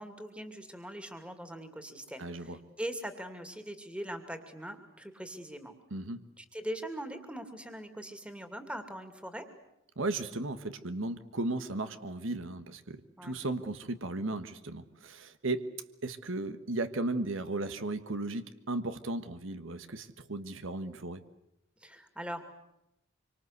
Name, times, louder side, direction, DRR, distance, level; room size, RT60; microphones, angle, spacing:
voice 1, 0.0-5.8 6.4-9.4 13.2-13.3 21.8-22.4, equal, 5° right, 7 dB, 2.5 m, -41 dB
voice 2, 2.2-2.6 5.9-6.2 10.0-15.7 16.0-21.2, right 2 dB, 75° right, 10 dB, 1.4 m, -35 dB
26.5 x 25.0 x 8.1 m, 0.85 s
head